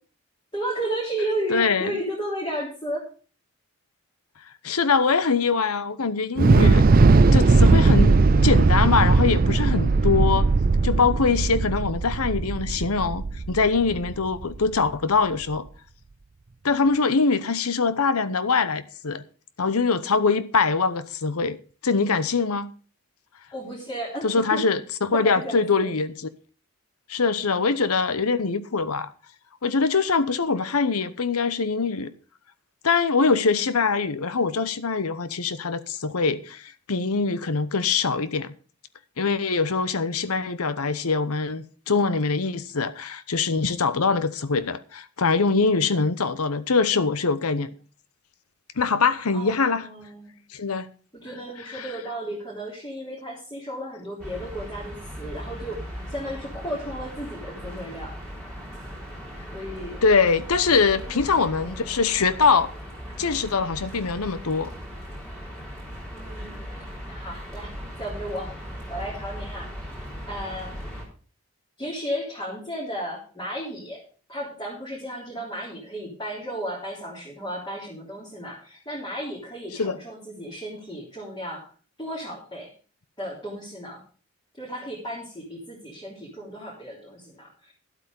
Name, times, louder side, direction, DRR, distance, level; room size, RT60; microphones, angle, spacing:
voice 1, 0.5-3.0 23.5-24.6 25.1-25.9 49.3-50.4 51.1-58.1 59.5-60.0 60.9-62.0 66.1-66.6 67.1-67.7 68.0-68.5 68.9-69.7 70.2-70.9 71.8-74.0 74.3-81.7 82.0-82.7 83.2-84.0 84.6-87.7, right 1 dB, 20° left, 3.4 m, -34 dB
voice 2, 1.5-1.9 4.6-6.8 7.3-10.5 10.8-15.7 16.6-19.2 19.6-21.6 21.8-22.7 24.2-26.1 27.1-29.1 29.6-32.1 32.8-38.5 39.2-47.7 48.8-49.8 50.5-50.9 51.7-51.9 60.0-62.7 63.2-64.7 79.8-80.0, left 4 dB, 85° left, 0.9 m, -23 dB
Thunder / Explosion, 6.4-14.6, right 3 dB, 40° right, 0.4 m, -18 dB
sound 1, 54.2-71.0, equal, 5° left, 3.9 m, -38 dB
12.0 x 8.3 x 5.2 m
head